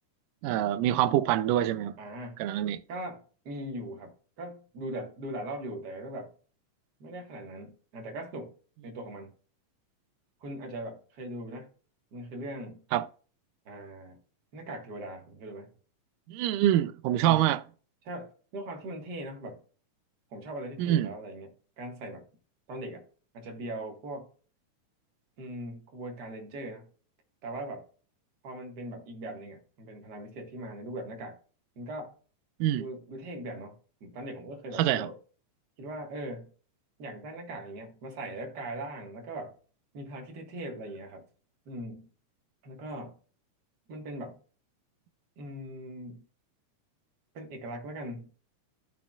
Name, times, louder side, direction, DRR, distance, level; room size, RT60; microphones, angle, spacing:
voice 1, 0.4-2.0 2.4-2.8 12.9-13.1 16.3-17.6 20.8-21.1 32.6-32.9 34.8-35.1, right 12 dB, 85° right, 2.2 m, -25 dB
voice 2, 2.0-2.4 2.9-6.3 7.0-8.5 8.8-9.3 10.4-11.7 12.1-12.8 13.7-14.2 14.5-15.7 17.2-17.4 18.0-19.6 20.3-22.3 22.7-23.1 23.3-24.3 25.4-26.9 27.4-27.9 28.4-31.4 31.8-32.1 32.8-35.2 35.8-36.5 37.0-39.5 39.9-41.3 41.7-42.1 42.6-43.2 43.9-44.4 45.4-46.2 47.3-48.3, right 1 dB, 40° right, 1.7 m, -40 dB
13.5 x 5.7 x 2.4 m
omnidirectional pair, 3.7 m